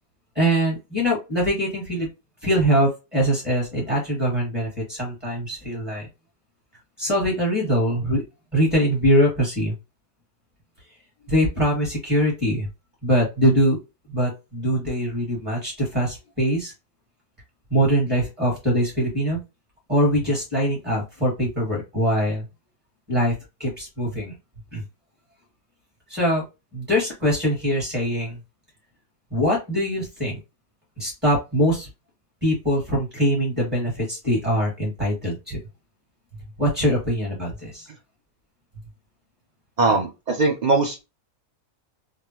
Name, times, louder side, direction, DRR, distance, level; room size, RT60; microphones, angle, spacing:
voice 1, 0.4-2.1 2.4-6.1 7.0-8.2 8.5-9.7 11.3-12.7 13.0-13.8 14.1-16.7 17.7-19.4 19.9-22.5 23.1-23.3 23.6-24.4 24.7-24.8 26.1-26.4 26.7-28.4 29.3-30.4 31.0-31.9 32.4-35.6 36.6-37.9, equal, 25° right, -4 dB, 1.8 m, -22 dB
voice 2, 39.8-41.0, right 3 dB, 50° right, 3 dB, 0.5 m, -21 dB
3.5 x 2.1 x 2.9 m, 0.26 s
omnidirectional pair, 1.4 m